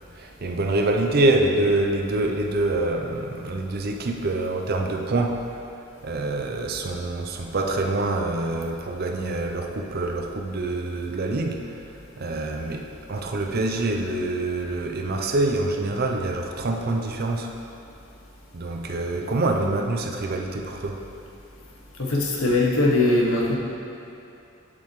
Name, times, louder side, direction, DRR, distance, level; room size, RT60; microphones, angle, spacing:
voice 1, 0.1-5.5 6.0-11.8 12.2-17.5 18.5-21.0, right 2 dB, 45° right, 3 dB, 0.5 m, -25 dB
voice 2, 22.0-23.6, left 2 dB, 75° left, -3 dB, 1.1 m, -21 dB
7.7 x 7.2 x 3.1 m, 2.7 s
head